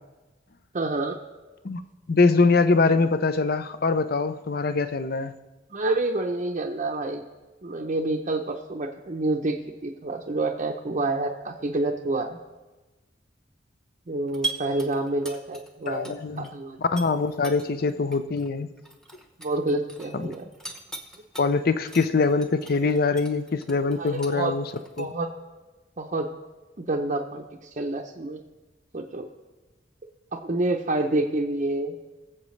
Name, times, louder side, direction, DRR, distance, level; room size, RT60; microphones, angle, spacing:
voice 1, 0.7-1.2 5.7-7.2 7.6-9.5 9.8-12.4 14.1-16.8 19.4-20.5 24.0-24.6 25.0-25.3 26.0-26.3 26.8-27.4 27.8-28.4 28.9-29.3 30.3-31.9, right 2 dB, 40° right, 0 dB, 0.7 m, -28 dB
voice 2, 2.1-5.3 15.9-16.5 16.8-18.7 20.1-20.3 21.4-24.7 25.0-25.1, left 4 dB, 55° left, 12 dB, 0.6 m, -23 dB
sound 1, 14.3-16.5 16.8-21.5 21.9-25.0, right 2 dB, 5° left, 0.9 m, -39 dB
21.5 x 7.3 x 3.2 m, 1.2 s
head